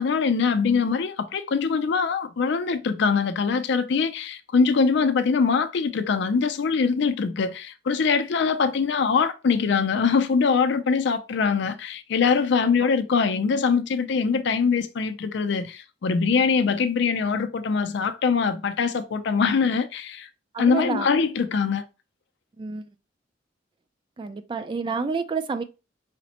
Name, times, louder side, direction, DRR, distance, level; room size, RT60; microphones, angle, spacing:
voice 1, 0.0-20.3 20.6-21.8, left 5 dB, 65° left, 0.4 m, -23 dB
voice 2, 20.5-21.1 22.6-22.9 24.2-25.6, right 4 dB, 25° right, 0.3 m, -29 dB
5.0 x 2.1 x 2.8 m
head